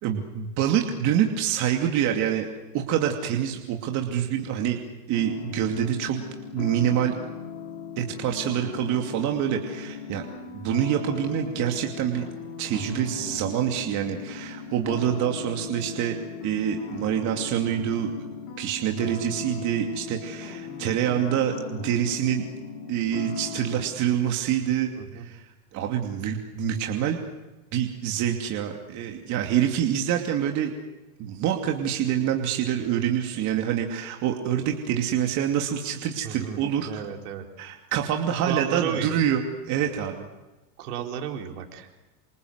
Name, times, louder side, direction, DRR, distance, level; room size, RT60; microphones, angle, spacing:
voice 1, 0.0-2.5 2.7-4.8 5.1-6.2 6.5-7.1 8.0-10.2 10.5-12.3 12.6-16.2 16.4-18.1 18.6-22.4 22.9-25.4 25.7-27.2 27.7-30.7 31.2-37.0 37.6-40.3, right 10 dB, 35° right, 3 dB, 2.7 m, -26 dB
sound 1, 5.1-23.8, left 7 dB, 40° left, 6.7 m, -38 dB
voice 2, 36.2-36.6 36.9-37.5 38.5-39.2 40.8-42.0, right 8 dB, 65° right, 3 dB, 4.3 m, -33 dB
28.0 x 26.5 x 8.1 m, 1.1 s
supercardioid pair, 145°, 48 cm